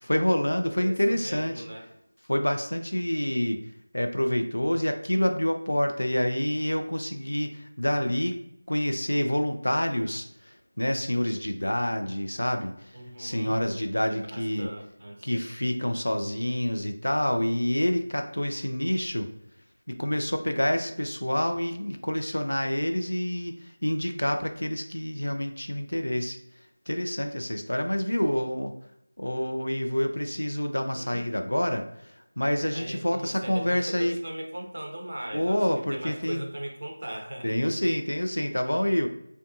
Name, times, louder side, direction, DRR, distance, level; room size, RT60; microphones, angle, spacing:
voice 1, 0.0-1.7 2.3-3.6 3.9-8.4 8.7-14.7 15.2-19.3 19.9-26.4 26.9-28.8 29.2-34.1 35.3-36.4 37.4-39.1, equal, 70° left, 6 dB, 0.3 m, -27 dB
voice 2, 0.8-1.9 12.9-13.5 14.1-15.4 30.9-31.3 32.7-35.6 35.9-37.5 37.8-38.0, right 1 dB, 50° right, 1 dB, 0.5 m, -39 dB
2.5 x 2.2 x 2.6 m, 0.77 s
figure-of-eight pair, 170°, 0 cm